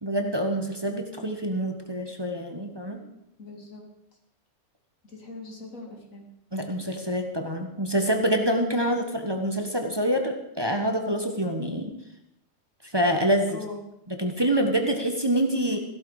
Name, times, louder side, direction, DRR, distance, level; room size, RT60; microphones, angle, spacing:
voice 1, 0.0-3.0 6.5-11.9 12.8-13.5 14.2-15.8, right 1 dB, 20° right, 3 dB, 1.3 m, -26 dB
voice 2, 3.4-3.8 5.0-6.2 13.5-13.9, left 3 dB, 80° left, 1 dB, 3.1 m, -41 dB
16.0 x 12.5 x 4.9 m, 0.81 s
omnidirectional pair, 1.4 m